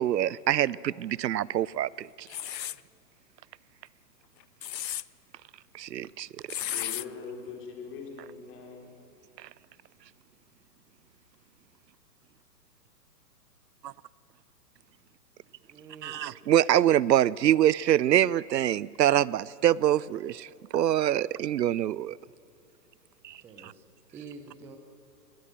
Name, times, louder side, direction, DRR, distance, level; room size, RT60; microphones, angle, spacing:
voice 1, 0.0-2.3 5.7-6.3 13.8-13.9 16.0-20.5 20.7-22.2 23.2-23.3 23.6-23.7, right 12 dB, 80° right, 0.6 m, -25 dB
sound 1, 2.3-2.8 4.4-5.0 6.5-7.0, left 11 dB, 90° left, 0.7 m, -33 dB
voice 2, 6.6-8.9, left 5 dB, 25° left, 3.5 m, -42 dB
voice 3, 15.6-16.1 23.4-23.8 24.1-24.8, right 4 dB, 5° right, 0.5 m, -47 dB
20.0 x 18.0 x 7.5 m
hypercardioid pair, 130°, 49 cm